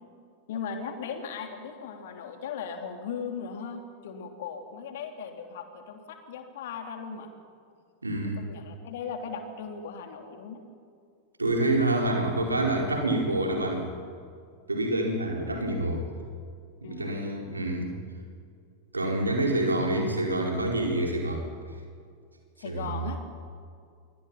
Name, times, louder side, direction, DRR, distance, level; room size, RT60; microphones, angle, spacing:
voice 1, 0.5-7.3 8.4-10.6 16.8-17.2 22.6-23.2, left 6 dB, 55° left, 5 dB, 3.0 m, -38 dB
voice 2, 8.0-8.4 11.4-13.9 14.7-16.0 16.8-17.9 18.9-21.5 22.6-23.1, right 1 dB, 80° right, 1 dB, 4.6 m, -27 dB
27.0 x 23.0 x 5.8 m, 2.3 s
figure-of-eight pair, 90°, 0 cm